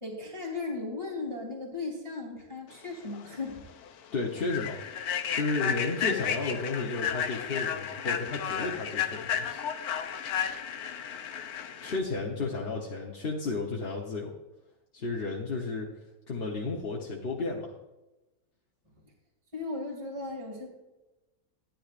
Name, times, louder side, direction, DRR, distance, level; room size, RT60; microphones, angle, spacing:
voice 1, 0.0-3.6 19.5-20.7, left 3 dB, 20° right, -2 dB, 2.4 m, -36 dB
Human voice / Train, 3.1-3.3 3.7-3.9 4.4-12.0, left 8 dB, 85° left, 1.2 m, -33 dB
voice 2, 4.1-4.8 5.3-9.6 11.8-14.3 14.9-15.9 16.3-17.7, left 3 dB, 45° left, -3 dB, 1.1 m, -32 dB
13.0 x 10.5 x 2.5 m, 1.0 s
omnidirectional pair, 1.5 m